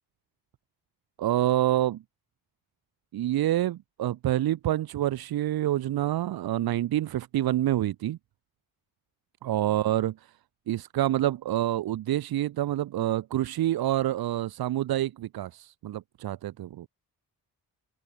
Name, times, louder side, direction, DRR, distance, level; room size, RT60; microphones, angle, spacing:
voice 1, 1.2-2.0 3.1-8.2 9.4-10.1 10.7-16.9, right 13 dB, 85° right, 1.1 m, -27 dB
open air
wide cardioid pair, 175°, 36 cm